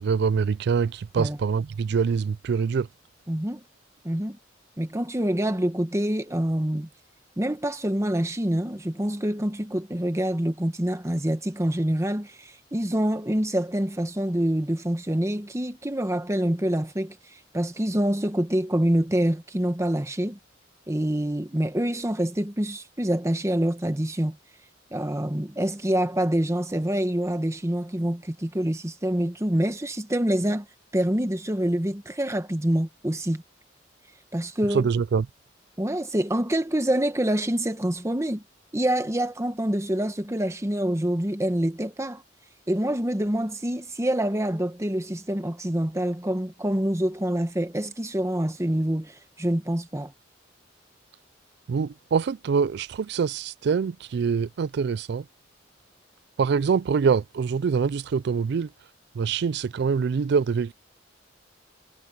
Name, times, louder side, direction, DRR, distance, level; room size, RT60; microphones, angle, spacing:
voice 1, 0.0-2.9 34.7-35.3 51.7-55.2 56.4-58.7 59.2-60.7, right 5 dB, 60° right, 0.4 m, -24 dB
voice 2, 3.3-3.6 4.0-4.4 4.8-6.9 7.4-20.4 20.9-24.4 24.9-30.7 30.9-33.4 34.3-34.9 35.8-38.4 38.7-42.2 42.7-50.1, right 1 dB, 15° right, 1.2 m, -26 dB
head